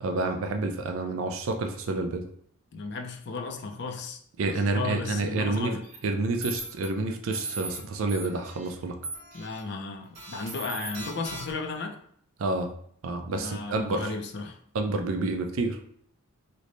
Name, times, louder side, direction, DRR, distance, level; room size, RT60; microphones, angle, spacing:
voice 1, 0.0-2.2 4.4-5.7 6.0-9.0 12.4-12.7 13.0-14.1 14.7-15.8, right 2 dB, 70° right, 5 dB, 0.5 m, -29 dB
voice 2, 2.7-4.2 4.5-5.9 9.3-12.0 13.3-14.6, left 3 dB, 50° left, 4 dB, 0.4 m, -34 dB
sound 1, 5.8-6.0 6.4-6.9 7.3-7.8 8.1-8.7 9.0-9.6 10.2-11.7, right 2 dB, 30° right, 0.8 m, -38 dB
3.2 x 2.1 x 3.8 m, 0.64 s
head